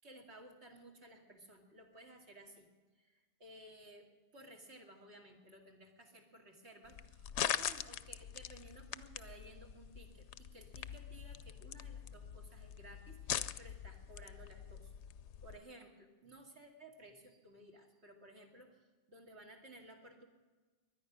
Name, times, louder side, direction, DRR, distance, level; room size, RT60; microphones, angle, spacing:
voice 1, 0.0-2.7 3.0-4.1 4.3-14.9 15.4-20.3, right 1 dB, 60° right, 1 dB, 2.7 m, -57 dB
sound 1, 6.9-15.6, left 10 dB, 70° left, 0.9 m, -43 dB
23.0 x 10.0 x 6.1 m, 1.3 s
omnidirectional pair, 1.3 m